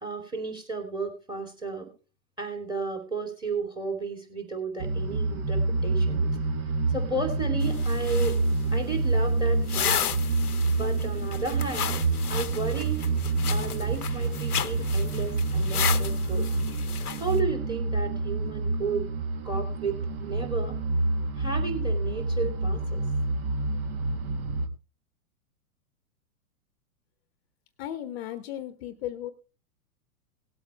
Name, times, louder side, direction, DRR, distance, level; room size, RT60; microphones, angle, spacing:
voice 1, 0.0-1.9 2.4-6.4 6.9-8.4 8.7-10.1 10.7-12.0 12.3-13.1 13.5-16.5 17.2-19.1 19.4-20.8 21.4-23.0, right 4 dB, 10° right, 6 dB, 2.8 m, -33 dB
sound 1, 4.8-24.7, right 3 dB, 40° right, 1.3 m, -27 dB
sound 2, 7.6-17.4, left 9 dB, 85° left, 0.8 m, -34 dB
voice 2, 27.8-29.3, left 12 dB, 45° left, 13 dB, 0.9 m, -35 dB
18.0 x 8.1 x 3.3 m, 0.32 s
hypercardioid pair, 110°, 44 cm